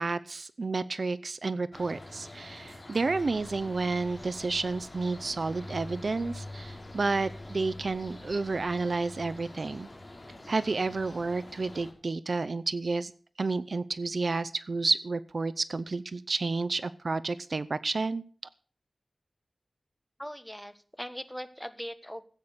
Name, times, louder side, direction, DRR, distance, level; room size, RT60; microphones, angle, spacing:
voice 1, 0.0-9.9 10.5-13.1 13.4-18.2, right 3 dB, 60° right, 16 dB, 0.6 m, -30 dB
sound 1, 1.7-11.9, left 1 dB, 30° left, 3.3 m, -45 dB
Aircraft, 3.1-8.7, left 2 dB, 70° left, 3.1 m, -57 dB
voice 2, 20.2-22.3, equal, 5° left, 11 dB, 1.3 m, -40 dB
15.0 x 8.7 x 6.6 m, 0.42 s
wide cardioid pair, 80°, 0 cm